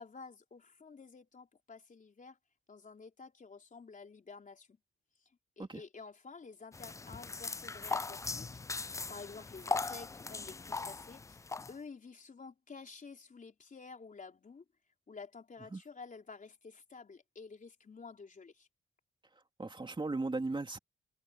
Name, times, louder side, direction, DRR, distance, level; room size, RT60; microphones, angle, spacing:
voice 1, 0.0-2.4 2.7-4.8 5.6-8.6 8.9-11.4 11.7-14.6 15.1-18.7, left 4 dB, 40° left, 4.1 m, -51 dB
sound 1, 6.7-11.7, left 3 dB, 15° left, 0.3 m, -39 dB
voice 2, 19.6-20.8, right 3 dB, 25° right, 3.0 m, -36 dB
cardioid pair, 95°, 21 cm